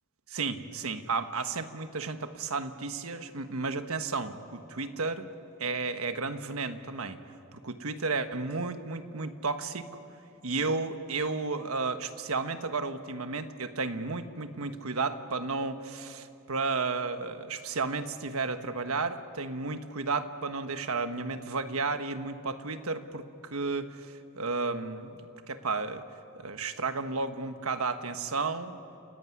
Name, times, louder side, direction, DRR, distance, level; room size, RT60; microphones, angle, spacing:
voice 1, 0.3-5.3 5.6-7.2 7.5-9.9 10.4-25.2 25.5-26.0 26.3-28.8, right 4 dB, 80° right, 8 dB, 1.4 m, -33 dB
30.0 x 17.0 x 9.9 m, 3.0 s
head